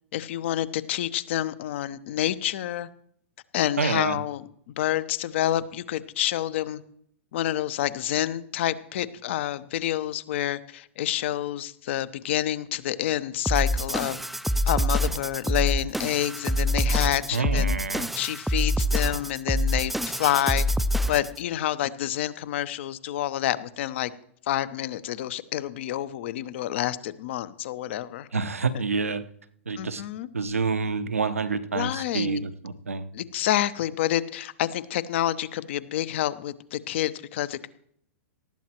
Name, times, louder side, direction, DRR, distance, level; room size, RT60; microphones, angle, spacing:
voice 1, 0.1-2.9 3.5-4.4 4.8-6.8 7.3-14.2 14.7-17.8 18.1-20.7 21.1-24.1 24.5-28.3 29.8-30.3 31.7-32.4 33.1-37.7, left 13 dB, 60° left, 15 dB, 0.9 m, -28 dB
voice 2, 3.8-4.2 17.3-18.1 28.3-29.2 29.7-30.0 30.3-33.1, right 4 dB, 85° right, 12 dB, 1.0 m, -27 dB
sound 1, 13.5-21.4, equal, ahead, 0.5 m, -26 dB
19.0 x 14.0 x 3.0 m, 0.67 s
hypercardioid pair, 105°, 7 cm